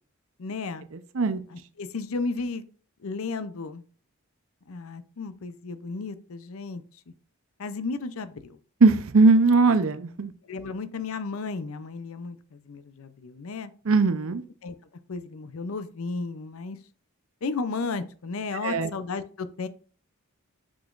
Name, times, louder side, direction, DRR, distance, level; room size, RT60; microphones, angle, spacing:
voice 1, 0.4-0.8 1.5-2.6 3.0-3.8 4.7-6.8 7.6-8.6 10.4-13.7 14.6-14.8 15.1-16.8 17.4-19.7, left 4 dB, 70° left, 12 dB, 0.5 m, -34 dB
voice 2, 8.8-10.3 13.9-14.4 18.6-18.9, right 3 dB, 70° right, 11 dB, 0.6 m, -19 dB
6.2 x 6.0 x 2.5 m, 0.40 s
head